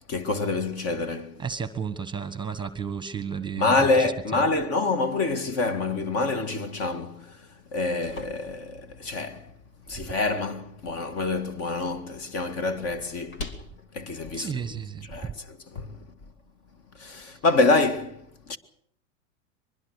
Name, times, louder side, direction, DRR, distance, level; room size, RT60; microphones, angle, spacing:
voice 1, 0.1-1.4 3.6-9.5 9.9-13.5 13.9-14.6 15.1-16.1 17.0-18.6, left 3 dB, 35° left, 2.0 m, -27 dB
voice 2, 1.4-3.9 4.3-4.4 14.3-15.1, right 6 dB, 10° right, 1.3 m, -32 dB
sound 1, 7.6-15.5, left 3 dB, 90° left, 2.9 m, -46 dB
23.5 x 21.0 x 6.6 m
hypercardioid pair, 120°, 39 cm